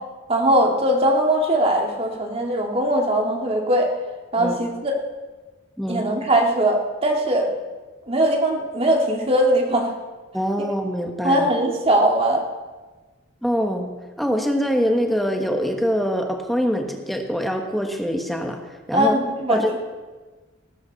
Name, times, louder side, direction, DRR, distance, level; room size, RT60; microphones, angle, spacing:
voice 1, 0.3-3.9 4.3-5.0 5.9-7.5 8.1-9.9 11.2-12.5 18.9-19.6, right 1 dB, 30° right, 1 dB, 2.2 m, -20 dB
voice 2, 10.3-11.5 13.4-13.9 14.2-18.6 18.9-19.1 19.5-19.8, equal, ahead, 3 dB, 1.3 m, -24 dB
19.0 x 14.5 x 4.1 m, 1.3 s
head